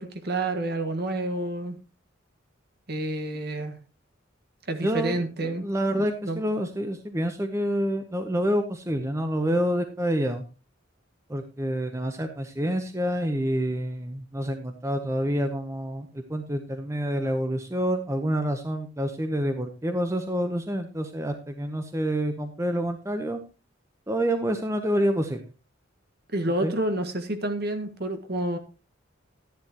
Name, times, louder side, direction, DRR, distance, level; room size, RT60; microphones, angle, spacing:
voice 1, 0.0-1.8 2.9-3.8 4.7-6.4 26.3-28.6, right 1 dB, 50° right, 7 dB, 1.6 m, -29 dB
voice 2, 4.8-10.4 11.3-23.4 24.1-25.4 26.6-26.7, equal, 15° right, 6 dB, 0.9 m, -27 dB
13.0 x 10.5 x 3.0 m, 0.31 s
head